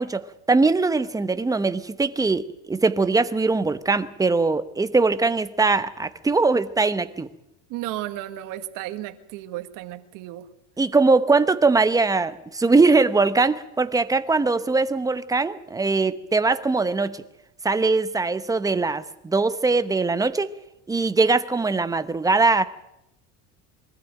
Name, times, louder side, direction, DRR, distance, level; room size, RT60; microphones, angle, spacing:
voice 1, 0.0-7.3 10.8-17.2 17.6-20.5 20.9-22.6, right 3 dB, 10° right, 12 dB, 0.9 m, -21 dB
voice 2, 7.7-10.5, right 14 dB, 60° right, 9 dB, 1.9 m, -33 dB
23.5 x 14.0 x 9.1 m, 0.84 s
cardioid pair, 145°, 36 cm